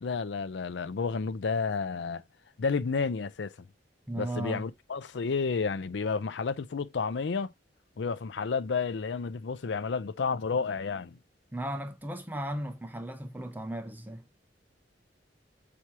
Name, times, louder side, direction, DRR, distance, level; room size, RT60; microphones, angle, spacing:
voice 1, 0.0-2.2 2.6-3.5 4.2-7.5 8.0-11.2, left 5 dB, 75° left, 0.5 m, -31 dB
voice 2, 4.1-4.7 11.5-14.2, right 1 dB, 10° right, 0.7 m, -36 dB
7.0 x 2.9 x 4.7 m
head